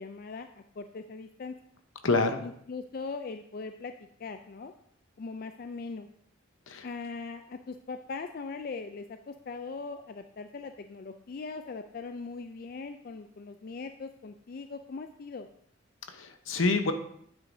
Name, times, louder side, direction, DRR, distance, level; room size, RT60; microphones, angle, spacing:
voice 1, 0.0-1.6 2.4-3.9 4.2-4.7 5.2-6.1 6.8-15.5, left 4 dB, 45° left, 8 dB, 0.3 m, -40 dB
voice 2, 2.0-2.4 6.7-6.9 16.1-16.9, left 3 dB, 75° left, 7 dB, 0.9 m, -27 dB
9.5 x 8.1 x 2.7 m, 0.68 s
head